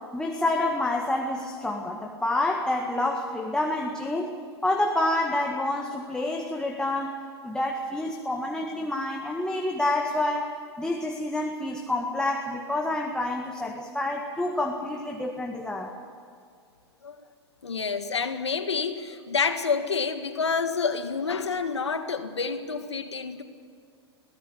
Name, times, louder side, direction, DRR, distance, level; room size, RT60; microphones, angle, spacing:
voice 1, 0.0-4.3 4.6-15.9, left 1 dB, 5° left, 1 dB, 1.9 m, -28 dB
voice 2, 17.6-23.4, left 5 dB, 85° left, 8 dB, 1.8 m, -28 dB
23.0 x 17.5 x 8.4 m, 2.3 s
hypercardioid pair, 100°, 14 cm